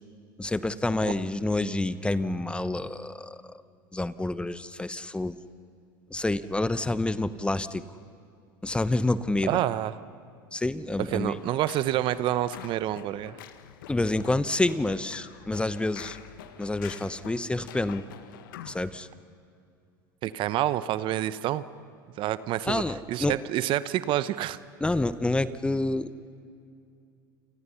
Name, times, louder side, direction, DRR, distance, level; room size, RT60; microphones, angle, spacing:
voice 1, 0.4-3.6 3.9-5.4 6.1-7.8 8.6-9.6 10.5-11.4 13.9-16.2 16.6-18.0 18.7-19.1 22.7-23.4 24.8-26.1, left 2 dB, 10° left, 14 dB, 1.0 m, -28 dB
voice 2, 9.4-9.9 11.0-13.4 20.2-21.6 22.2-22.8 23.1-24.6, right 13 dB, 50° right, 15 dB, 0.9 m, -28 dB
sound 1, 11.3-19.0, left 11 dB, 75° left, 1.4 m, -46 dB
29.0 x 28.0 x 5.8 m, 2.4 s
hypercardioid pair, 85°, 11 cm